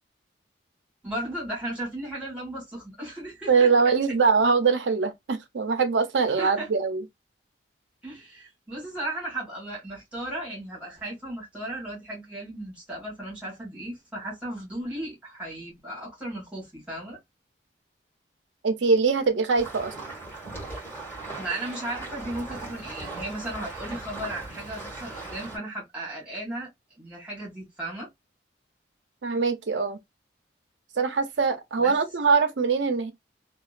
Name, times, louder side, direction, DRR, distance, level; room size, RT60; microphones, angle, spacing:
voice 1, 1.0-3.9 6.4-6.7 8.0-17.2 21.4-26.7 27.0-28.1 31.8-32.0, right 1 dB, 5° right, 1.5 m, -35 dB
voice 2, 3.5-7.0 18.6-19.9 29.2-30.0 31.0-33.1, right 5 dB, 80° right, 0.6 m, -23 dB
sound 1, 19.6-25.6, right 3 dB, 10° left, 1.7 m, -38 dB
2.9 x 2.3 x 2.4 m
head